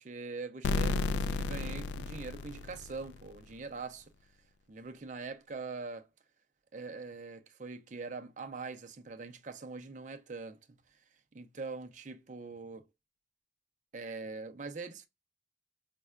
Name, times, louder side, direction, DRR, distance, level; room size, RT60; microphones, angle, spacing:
voice 1, 0.0-4.1 4.7-6.1 6.7-10.6 11.3-12.9 13.9-15.1, right 4 dB, 40° right, 0.5 m, -43 dB
sound 1, 0.6-3.4, left 3 dB, 75° left, 0.3 m, -33 dB
5.3 x 2.1 x 2.3 m
head